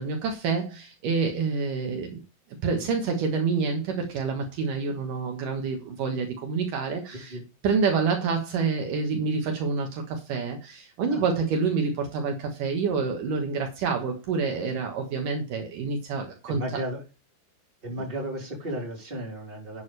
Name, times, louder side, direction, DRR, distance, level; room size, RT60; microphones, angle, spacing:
voice 1, 0.0-2.2 2.6-7.4 7.6-16.8, right 5 dB, 85° right, 1.8 m, -27 dB
voice 2, 7.1-7.4 11.1-11.2 16.5-17.0 17.8-19.8, right 1 dB, 10° right, 3.2 m, -34 dB
11.0 x 9.5 x 3.3 m
omnidirectional pair, 6.0 m